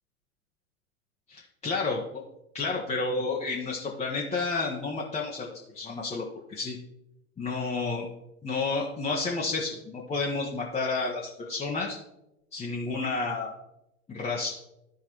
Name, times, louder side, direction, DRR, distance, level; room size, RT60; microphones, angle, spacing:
voice 1, 1.3-2.2 2.5-6.8 7.4-8.1 8.4-12.0 12.5-13.5 14.1-14.5, left 3 dB, 15° left, -3 dB, 1.1 m, -31 dB
13.5 x 4.7 x 3.0 m, 0.89 s
figure-of-eight pair, 95°, 42 cm